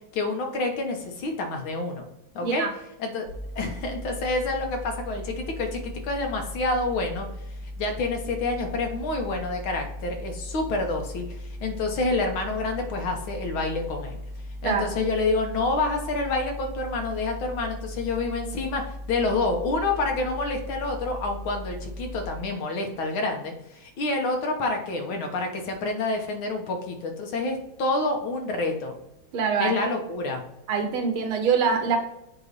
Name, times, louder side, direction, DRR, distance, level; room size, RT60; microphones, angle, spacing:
voice 1, 0.1-2.1 2.4-2.7 3.0-7.3 7.8-14.2 14.6-29.0 29.6-30.4, left 3 dB, 85° left, 3 dB, 1.9 m, -28 dB
sound 1, 3.3-22.3, left 1 dB, 60° right, 1.6 m, -38 dB
voice 2, 14.6-14.9 29.3-29.9 30.7-32.0, right 6 dB, 90° right, 5 dB, 2.0 m, -24 dB
8.1 x 3.0 x 5.3 m, 0.87 s
omnidirectional pair, 2.2 m